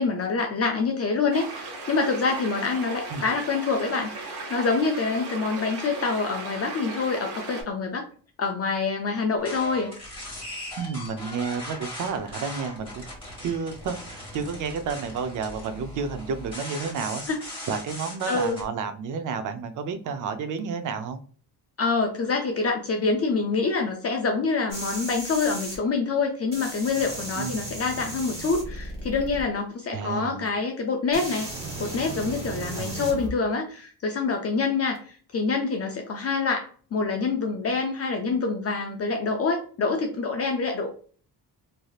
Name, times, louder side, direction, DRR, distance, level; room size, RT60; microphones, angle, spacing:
voice 1, 0.0-8.0 8.4-9.9 17.3-17.4 18.3-18.6 21.8-31.5 31.8-40.9, left 4 dB, 40° left, 3 dB, 0.4 m, -26 dB
sound 1, 1.3-7.6, right 3 dB, 70° right, 1.2 m, -37 dB
sound 2, 9.4-18.6, left 1 dB, 15° left, 1.5 m, -39 dB
voice 2, 10.8-13.0 13.4-17.2 17.7-21.2 27.4-27.6 29.9-30.4 32.7-33.1, right 5 dB, 50° right, 9 dB, 0.5 m, -31 dB
sound 3, 24.7-25.8 26.5-29.4 30.5-30.6 31.1-33.3 35.0-35.1, right 2 dB, 15° right, 1.3 m, -35 dB
3.3 x 2.6 x 2.3 m, 0.43 s
wide cardioid pair, 170°, 40 cm